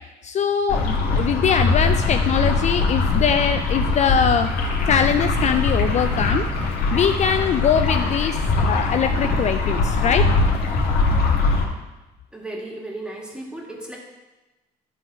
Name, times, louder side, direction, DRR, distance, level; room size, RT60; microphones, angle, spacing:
voice 1, 0.2-4.5 4.9-6.5 6.9-10.3, left 7 dB, 45° left, 8 dB, 0.4 m, -22 dB
sound 1, 0.7-11.6, left 3 dB, 65° left, 2.0 m, -21 dB
voice 2, 12.3-14.0, right 2 dB, 5° right, -2 dB, 2.2 m, -34 dB
11.5 x 4.0 x 6.2 m, 1.1 s
cardioid pair, 110°, 17 cm